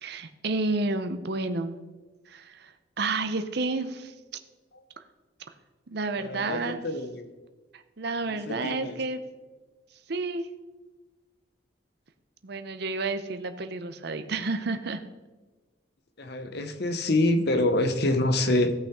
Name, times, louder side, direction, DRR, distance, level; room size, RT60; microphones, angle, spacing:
voice 1, 0.0-1.8 2.3-4.1 5.9-7.0 7.7-9.2 10.1-10.5 12.4-15.0, right 3 dB, 55° right, 9 dB, 0.7 m, -31 dB
voice 2, 6.2-7.2 8.5-8.9 16.2-18.7, left 1 dB, 55° left, 9 dB, 0.8 m, -26 dB
16.0 x 5.7 x 3.6 m, 1.3 s
head